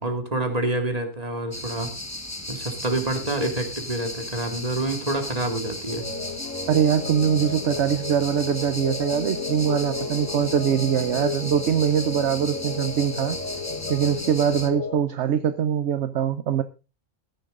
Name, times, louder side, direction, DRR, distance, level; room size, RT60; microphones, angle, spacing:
voice 1, 0.0-1.9 2.5-6.0, right 2 dB, 30° right, 5 dB, 2.5 m, -27 dB
sound 1, 1.5-14.7, left 1 dB, 15° left, 1.2 m, -36 dB
sound 2, 5.9-15.0, left 4 dB, 90° left, 1.7 m, -33 dB
voice 2, 6.7-13.4 13.9-16.6, right 9 dB, 65° right, 12 dB, 1.0 m, -23 dB
15.0 x 10.5 x 3.8 m, 0.30 s
omnidirectional pair, 1.3 m